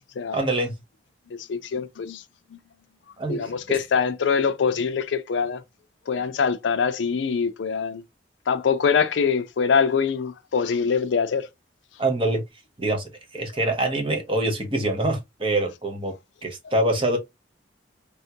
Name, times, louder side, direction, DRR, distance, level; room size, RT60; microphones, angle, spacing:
voice 1, 0.3-0.7 3.2-3.5 12.0-12.4 12.8-16.1 16.4-17.2, right 2 dB, 30° right, 0.8 m, -25 dB
voice 2, 1.4-2.2 3.3-5.6 6.1-8.0 8.5-11.5, left 6 dB, 75° left, 0.4 m, -24 dB
3.5 x 2.3 x 2.7 m
head